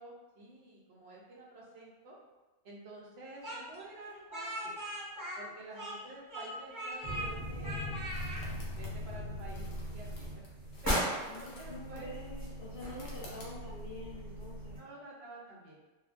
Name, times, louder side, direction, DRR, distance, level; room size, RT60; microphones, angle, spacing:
voice 1, 0.0-2.2 2.6-4.8 5.3-7.9 8.7-10.4 10.8-12.1 14.7-15.8, right 2 dB, 65° right, -4 dB, 0.7 m, -49 dB
Speech, 3.4-6.0 6.3-7.3 7.6-8.4, right 1 dB, 25° right, 0.4 m, -40 dB
sound 1, 6.8-14.0, left 1 dB, 85° left, 1.0 m, -56 dB
sound 2, 7.0-14.8, equal, 20° left, 0.7 m, -38 dB
voice 2, 11.3-14.8, left 1 dB, 60° left, -6 dB, 0.6 m, -46 dB
2.8 x 2.3 x 2.4 m, 1.1 s
omnidirectional pair, 1.3 m